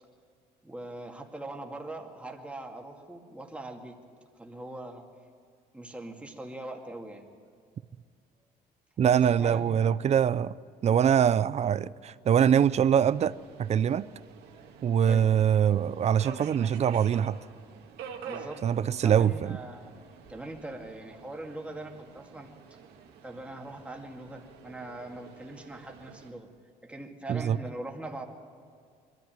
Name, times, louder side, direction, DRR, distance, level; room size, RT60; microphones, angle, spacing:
voice 1, 0.6-4.0 4.4-5.0 5.7-7.3 9.1-10.0 15.0-15.3 18.2-18.6 19.0-19.9 20.3-22.8 23.2-26.5 26.8-28.3, right 2 dB, 5° right, 2.3 m, -41 dB
voice 2, 9.0-10.5 10.8-14.1 14.8-17.4 18.6-19.6 27.3-27.6, right 8 dB, 40° right, 0.5 m, -23 dB
Subway metro underground, 12.5-26.3, right 6 dB, 80° right, 2.2 m, -48 dB
22.0 x 13.5 x 9.2 m
cardioid pair, 110°, 17 cm